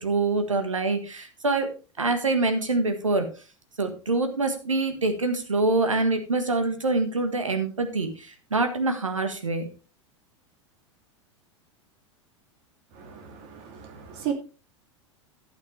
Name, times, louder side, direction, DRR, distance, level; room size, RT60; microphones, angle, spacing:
voice 1, 0.0-1.7 2.0-3.3 3.8-9.6, right 3 dB, 80° right, 7 dB, 1.5 m, -25 dB
voice 2, 12.9-14.3, right 9 dB, 45° right, 5 dB, 2.7 m, -35 dB
12.0 x 8.5 x 3.3 m, 0.34 s
figure-of-eight pair, 85°, 16 cm